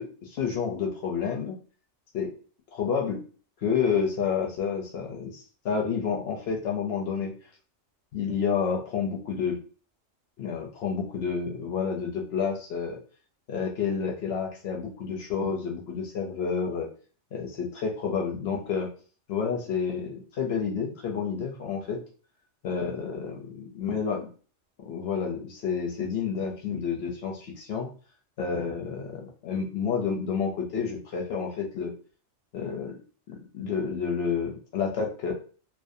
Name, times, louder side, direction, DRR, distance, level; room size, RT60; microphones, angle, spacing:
voice 1, 0.0-1.6 2.1-2.3 2.7-3.2 3.6-7.3 8.1-9.6 10.4-13.0 13.5-16.9 17.3-18.9 19.3-22.0 22.6-24.3 24.9-27.9 28.4-31.9 32.5-32.9 33.3-35.3, left 6 dB, 65° left, 0 dB, 0.7 m, -29 dB
2.5 x 2.1 x 2.5 m, 0.39 s
omnidirectional pair, 1.3 m